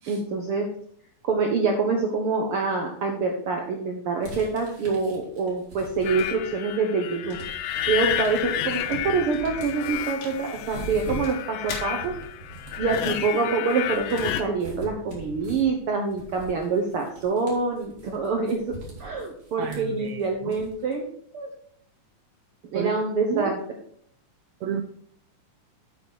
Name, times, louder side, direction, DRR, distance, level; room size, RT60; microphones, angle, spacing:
voice 1, 0.1-0.7 1.2-7.4 7.9-12.1 12.8-21.1 21.3-21.5 22.7-23.6, right 4 dB, 70° right, 2 dB, 1.3 m, -26 dB
sound 1, 4.2-6.6 7.0-20.9, right 1 dB, 45° right, 3.2 m, -42 dB
sound 2, 6.0-14.4, left 11 dB, 85° left, 2.3 m, -31 dB
sound 3, 6.9-14.8, left 4 dB, 60° left, 3.0 m, -46 dB
voice 2, 19.6-20.6 22.7-22.9 23.3-23.5 24.6-24.8, right 9 dB, 85° right, 5 dB, 1.6 m, -31 dB
8.5 x 6.6 x 4.5 m, 0.65 s
omnidirectional pair, 3.7 m